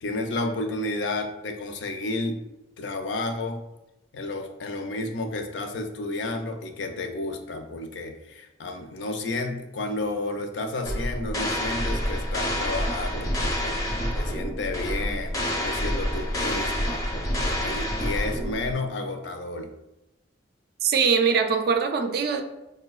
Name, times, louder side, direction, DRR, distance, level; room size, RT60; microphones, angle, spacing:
voice 1, 0.0-2.4 2.8-3.6 4.1-13.7 14.1-17.0 17.3-19.7, left 2 dB, 80° left, 5 dB, 0.4 m, -31 dB
sound 1, 10.8-18.7, equal, 20° left, 0.4 m, -28 dB
voice 2, 20.8-22.4, right 6 dB, 55° right, 6 dB, 0.3 m, -22 dB
4.8 x 2.2 x 2.3 m, 0.94 s
head